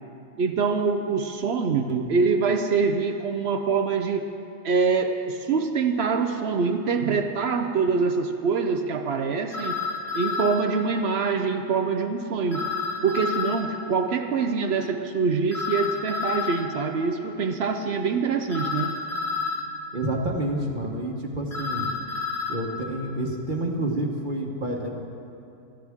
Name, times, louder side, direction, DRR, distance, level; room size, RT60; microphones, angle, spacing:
voice 1, 0.4-4.3 4.6-9.8 10.1-12.7 13.0-19.0, right 5 dB, 60° right, 7 dB, 0.7 m, -25 dB
sound 1, 9.5-10.6 12.5-13.6 15.5-16.7 18.5-19.7 21.5-22.6, left 4 dB, 45° left, 1.4 m, -29 dB
voice 2, 19.9-21.9 22.5-24.9, right 1 dB, 35° right, 1 dB, 1.1 m, -28 dB
18.0 x 14.0 x 3.6 m, 2.8 s
omnidirectional pair, 1.7 m